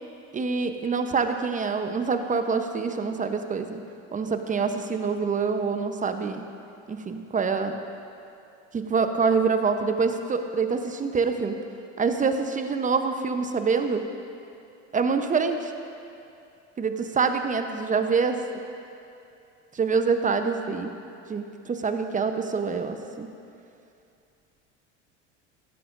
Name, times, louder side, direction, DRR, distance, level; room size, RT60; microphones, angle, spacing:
voice 1, 0.3-3.8 4.1-6.4 6.9-7.8 8.7-11.6 12.0-14.1 14.9-15.7 16.8-18.4 19.7-20.9 21.3-23.3, right 5 dB, 20° right, 7 dB, 0.8 m, -26 dB
15.5 x 11.5 x 2.6 m, 2.6 s
hypercardioid pair, 85°, 35 cm